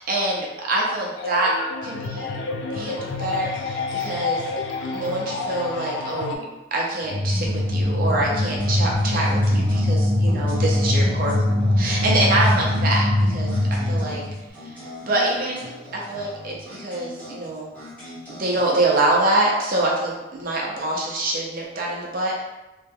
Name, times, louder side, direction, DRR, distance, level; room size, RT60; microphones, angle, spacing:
voice 1, 0.0-2.4 2.7-4.4 4.9-6.4 6.7-13.5 13.9-14.2 14.6-14.7 15.1-17.7 18.3-22.4, right 2 dB, 45° right, -3 dB, 0.6 m, -25 dB
sound 1, 1.2-6.4, left 4 dB, 60° left, 0.3 m, -29 dB
sound 2, 7.0-14.4, left 1 dB, 35° left, 0.9 m, -22 dB
sound 3, 8.4-18.9, left 1 dB, 10° left, 1.3 m, -41 dB
3.1 x 3.0 x 2.3 m, 1.0 s
head